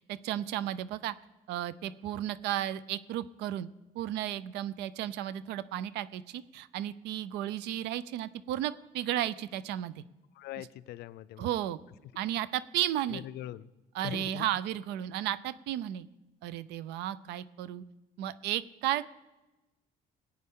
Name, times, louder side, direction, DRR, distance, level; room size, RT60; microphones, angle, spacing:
voice 1, 0.1-1.1 1.5-3.7 3.9-10.0 11.4-11.8 12.2-13.2 13.9-16.1 16.4-17.8 18.2-19.1, right 12 dB, 90° right, 16 dB, 0.5 m, -34 dB
voice 2, 10.3-11.5 13.1-13.7 14.0-14.4, left 13 dB, 75° left, 17 dB, 0.5 m, -41 dB
19.0 x 8.7 x 3.7 m, 1.1 s
cardioid pair, 110°, 17 cm